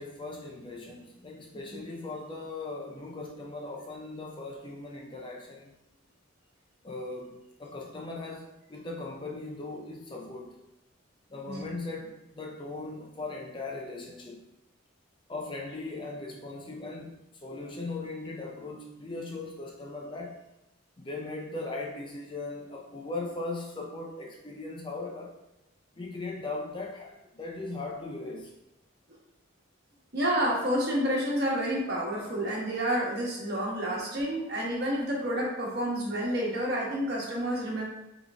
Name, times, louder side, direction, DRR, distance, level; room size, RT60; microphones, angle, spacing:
voice 1, 0.0-5.7 6.8-10.6 11.3-14.5 15.3-20.4 21.0-25.3 26.0-28.5, left 2 dB, 25° left, -1 dB, 0.5 m, -39 dB
voice 2, 30.1-37.8, equal, 50° right, -4 dB, 1.3 m, -29 dB
3.9 x 3.7 x 3.4 m, 0.87 s
head